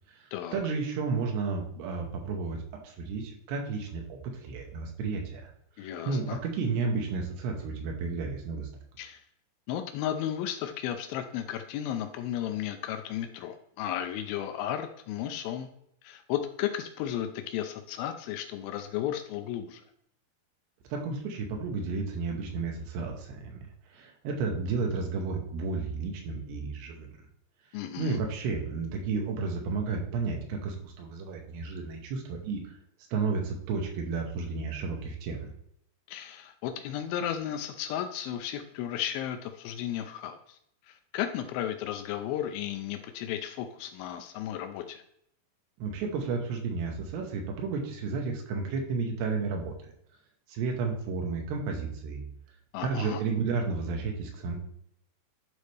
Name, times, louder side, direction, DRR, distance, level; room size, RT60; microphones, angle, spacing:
voice 1, 0.1-5.5 5.8-8.7 20.9-23.6 23.9-27.1 28.0-32.8 33.1-35.5 45.8-49.9 50.5-52.2 52.8-54.6, right 4 dB, 80° right, 1 dB, 3.0 m, -32 dB
voice 2, 5.8-6.4 9.0-9.2 9.7-15.7 16.0-19.8 27.7-28.2 36.1-40.6 40.9-45.0 52.7-53.2, left 10 dB, 90° left, 7 dB, 2.1 m, -34 dB
11.0 x 4.1 x 3.3 m, 0.71 s
omnidirectional pair, 4.8 m